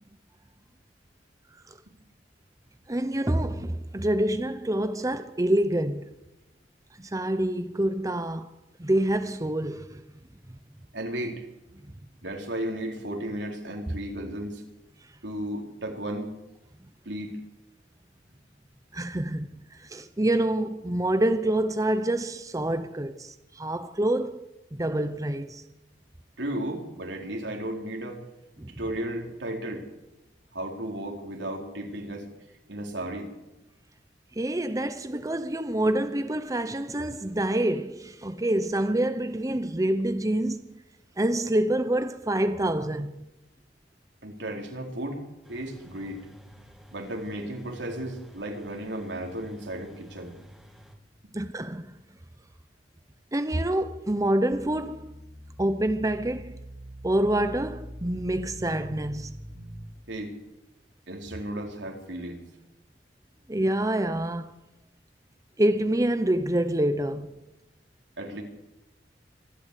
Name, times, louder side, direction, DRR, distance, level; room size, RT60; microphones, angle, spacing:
voice 1, 2.9-6.1 7.1-8.5 8.8-10.0 18.9-19.5 19.8-25.6 28.6-28.7 34.4-40.6 41.2-43.2 51.3-51.9 53.3-55.1 55.6-56.5 57.0-59.4 63.5-64.5 65.6-67.3, right 1 dB, 20° right, 0.8 m, -27 dB
voice 2, 10.9-11.4 12.2-14.6 15.2-16.3 17.0-17.4 26.4-28.3 28.7-29.8 30.5-32.3 32.7-33.3 44.2-45.2 45.5-46.2 46.9-50.4 51.2-51.3 60.1-60.4 61.1-62.4 68.2-68.4, right 1 dB, 80° right, 4.2 m, -34 dB
sound 1, 45.4-51.0, equal, ahead, 2.4 m, -51 dB
sound 2, 54.5-59.8, equal, 55° right, 4.2 m, -43 dB
25.0 x 12.5 x 8.4 m
head